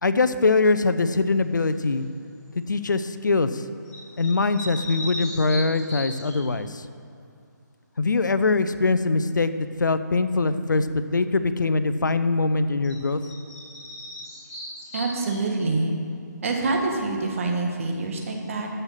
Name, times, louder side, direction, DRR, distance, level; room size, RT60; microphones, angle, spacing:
voice 1, 0.0-2.0 2.6-3.6 4.2-6.9 8.0-9.5 9.8-13.2, left 3 dB, 75° left, 11 dB, 0.7 m, -22 dB
sound 1, 1.7-2.0 3.8-6.5 12.8-12.9 13.2-15.7, left 1 dB, 10° left, 2.6 m, -37 dB
voice 2, 14.9-15.9 16.4-18.7, right 3 dB, 45° right, 1 dB, 1.7 m, -26 dB
13.5 x 6.7 x 5.8 m, 2.3 s
figure-of-eight pair, 150°, 10 cm